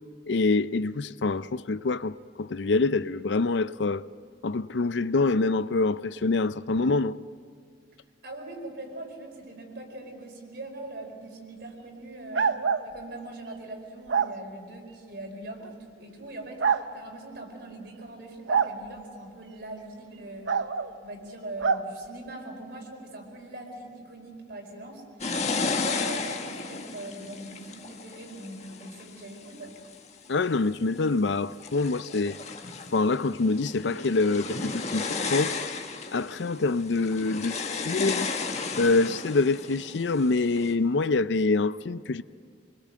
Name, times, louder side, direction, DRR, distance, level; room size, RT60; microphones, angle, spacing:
voice 1, 0.3-4.0 4.4-7.2 30.3-32.4 32.9-35.6 36.1-38.3 38.8-42.2, left 3 dB, 70° left, 0.6 m, -25 dB
voice 2, 8.2-12.5 12.8-20.5 21.0-25.0 25.6-29.7, right 2 dB, 65° right, 4.8 m, -41 dB
sound 1, 12.3-12.9 14.1-14.3 15.6-15.7 16.6-16.8 18.5-18.7 20.5-20.9 21.6-21.8, right 6 dB, 90° right, 0.8 m, -25 dB
sound 2, 25.2-29.9 30.5-31.1 31.5-40.7, left 4 dB, 40° left, 1.4 m, -34 dB
26.5 x 21.0 x 7.6 m
head